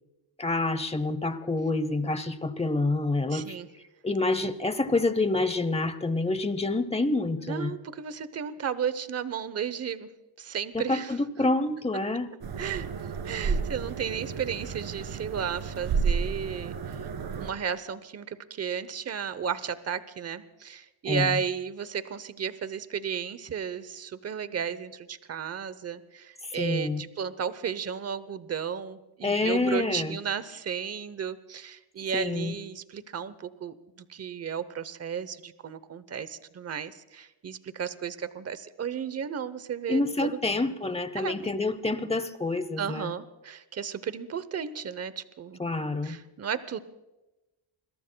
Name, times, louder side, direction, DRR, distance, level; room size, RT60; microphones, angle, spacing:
voice 1, 0.4-3.6 4.0-7.7 10.7-12.3 21.1-21.4 26.4-27.0 29.2-30.2 32.1-32.6 39.9-43.1 45.6-46.2, left 2 dB, 15° left, 13 dB, 0.8 m, -27 dB
voice 2, 3.3-3.7 7.4-10.1 10.4-11.1 12.6-17.1 17.4-40.4 41.1-41.4 42.8-45.7 46.0-46.8, right 7 dB, 30° right, 15 dB, 0.8 m, -34 dB
sound 1, 12.4-17.5, right 5 dB, 50° right, 1.9 m, -31 dB
28.5 x 22.0 x 2.3 m, 1.0 s
cardioid pair, 140°, 49 cm